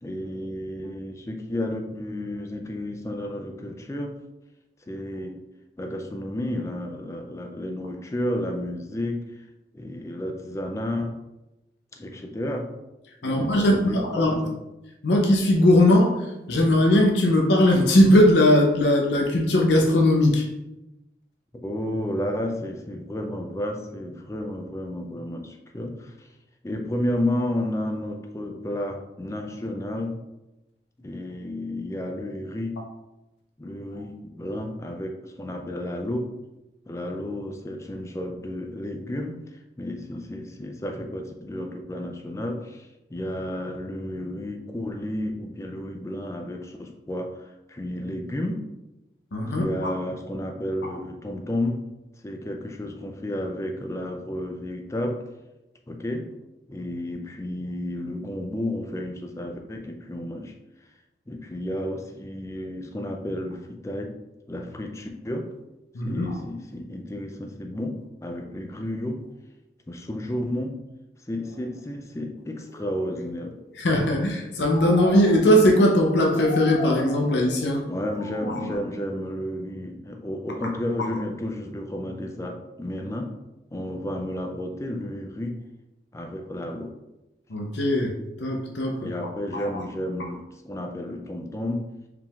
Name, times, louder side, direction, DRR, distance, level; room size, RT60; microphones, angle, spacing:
voice 1, 0.0-4.2 4.9-5.4 5.8-9.4 9.7-11.2 11.9-12.7 13.2-14.5 21.6-26.3 26.6-30.2 31.0-32.8 33.6-36.3 36.9-48.6 49.4-51.8 52.2-55.2 55.9-56.3 56.7-60.5 61.3-64.1 64.5-65.5 66.0-69.2 69.9-70.8 71.3-73.5 77.9-83.3 83.7-85.5 86.1-86.9 89.0-91.9, left 1 dB, 15° left, 4 dB, 0.4 m, -32 dB
voice 2, 13.2-14.3 15.0-16.2 16.5-20.4 49.3-49.9 65.9-66.2 73.8-77.8 78.5-78.6 87.5-88.1 88.4-89.0 89.5-89.6, left 1 dB, 85° left, 1 dB, 0.6 m, -19 dB
sound 1, 71.4-71.6 72.5-73.8 74.7-75.8 76.3-77.7 78.1-78.7, left 2 dB, 40° left, 1.4 m, -37 dB
4.7 x 3.6 x 2.4 m, 0.97 s
head